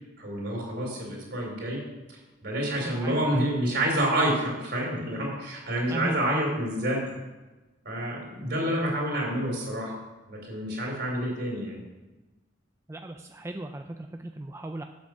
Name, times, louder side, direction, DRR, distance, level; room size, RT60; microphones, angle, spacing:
voice 1, 0.2-1.8 2.1-7.2 7.9-9.9 10.3-11.8, right 1 dB, 60° right, -2 dB, 3.7 m, -28 dB
voice 2, 2.8-3.5 5.9-6.6 8.6-8.8 12.9-14.8, right 1 dB, 15° right, 5 dB, 0.4 m, -36 dB
7.8 x 6.9 x 6.2 m, 1.1 s
head